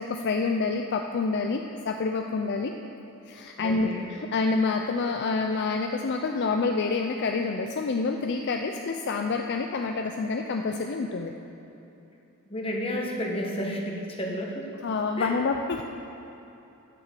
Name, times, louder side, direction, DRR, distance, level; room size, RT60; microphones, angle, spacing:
voice 1, 0.0-2.7 3.3-11.3 14.8-15.8, left 4 dB, 50° left, 4 dB, 0.4 m, -27 dB
voice 2, 3.6-4.1 12.5-14.7 15.2-15.3, equal, 25° left, 0 dB, 1.2 m, -31 dB
10.5 x 5.9 x 7.5 m, 2.9 s
head